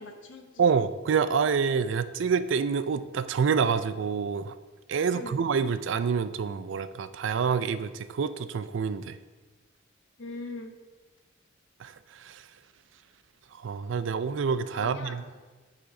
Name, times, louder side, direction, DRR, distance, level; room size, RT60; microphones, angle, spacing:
voice 1, 0.0-0.7 5.1-5.4 10.2-10.7 14.7-15.4, left 3 dB, 80° left, 5 dB, 1.0 m, -41 dB
voice 2, 0.6-4.6 4.9-9.2 11.8-11.9 12.2-12.4 13.6-15.4, right 6 dB, 70° right, 13 dB, 0.4 m, -27 dB
10.0 x 3.9 x 4.8 m, 1.3 s
head